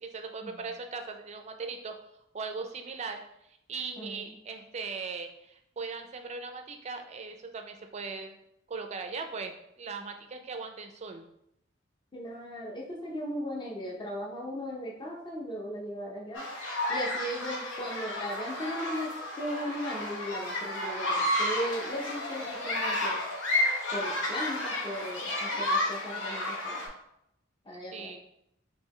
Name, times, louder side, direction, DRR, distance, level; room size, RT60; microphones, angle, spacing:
voice 1, 0.0-1.9 2.3-3.2 3.7-8.3 8.7-11.2 25.4-25.6 27.9-28.2, right 4 dB, 35° right, 5 dB, 0.4 m, -39 dB
voice 2, 4.0-4.4 12.1-16.5 16.9-23.2 23.9-26.9 27.6-28.2, equal, 25° left, -3 dB, 0.6 m, -37 dB
sound 1, 16.3-26.9, left 1 dB, 70° left, 0.8 m, -32 dB
3.7 x 2.9 x 3.1 m, 0.78 s
head